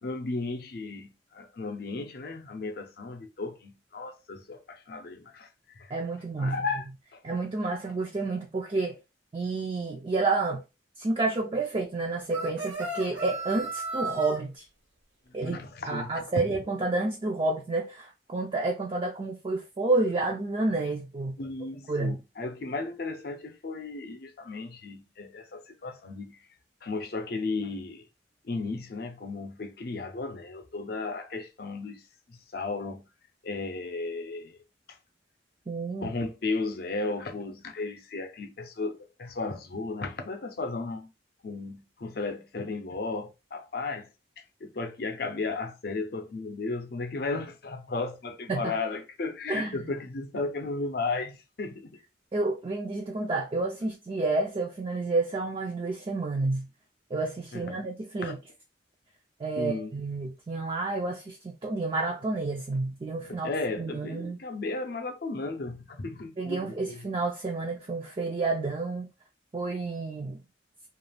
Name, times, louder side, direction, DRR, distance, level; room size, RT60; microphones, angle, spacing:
voice 1, 0.0-5.9 6.4-7.2 15.4-16.2 21.4-26.4 26.8-28.1 28.4-32.0 32.3-33.1 33.4-34.6 36.0-41.1 41.4-44.1 44.4-52.0 57.5-57.8 58.2-58.3 59.6-60.0 63.3-67.1, left 3 dB, 55° left, 0.5 m, -35 dB
voice 2, 5.9-6.6 7.2-9.0 9.3-10.6 11.0-14.7 15.3-21.4 21.9-22.2 35.7-36.1 48.5-48.7 49.5-49.8 52.3-56.7 57.1-58.4 59.4-64.4 66.4-69.1 69.5-70.4, right 3 dB, 30° right, 0.3 m, -30 dB
sound 1, 12.3-14.4, right 2 dB, 85° right, 1.1 m, -34 dB
2.4 x 2.3 x 3.2 m
head